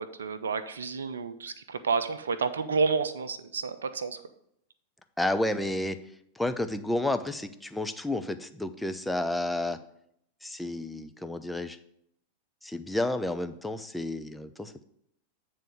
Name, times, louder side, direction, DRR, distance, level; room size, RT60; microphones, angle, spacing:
voice 1, 0.2-4.2, right 5 dB, 70° right, 10 dB, 0.5 m, -30 dB
voice 2, 5.2-6.0 6.4-9.8 10.4-11.8 12.6-14.8, left 1 dB, 5° left, 9 dB, 0.5 m, -31 dB
9.0 x 3.5 x 6.6 m, 0.72 s
figure-of-eight pair, 90°, 0 cm